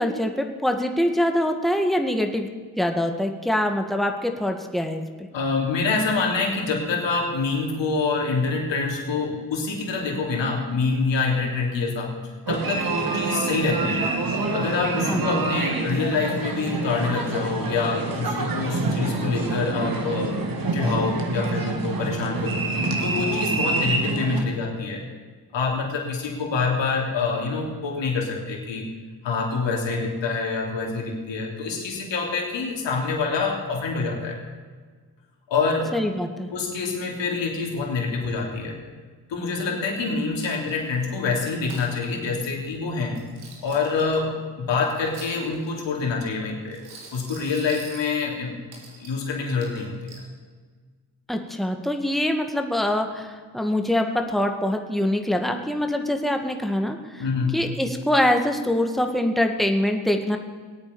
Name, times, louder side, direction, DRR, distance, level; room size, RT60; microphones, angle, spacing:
voice 1, 0.0-2.5 2.8-5.0 15.1-15.4 35.9-36.5 51.3-57.2 57.5-60.4, left 1 dB, ahead, 4 dB, 2.1 m, -24 dB
voice 2, 5.3-12.2 12.5-14.1 14.5-20.3 20.7-25.0 25.5-28.9 29.2-34.4 35.5-35.9 36.5-38.8 39.3-43.2 43.6-46.8 47.1-48.5 49.0-50.2 57.2-57.6, left 4 dB, 70° left, 0 dB, 3.4 m, -26 dB
sound 1, 12.5-24.4, right 3 dB, 45° right, 2.7 m, -26 dB
Coin (dropping), 40.4-40.9 41.4-41.9 43.0-44.2 44.8-45.7 46.7-48.1 48.7-49.2 49.6-50.3, right 4 dB, 90° right, 2.7 m, -45 dB
19.0 x 8.9 x 7.1 m, 1.5 s
hypercardioid pair, 45°, 46 cm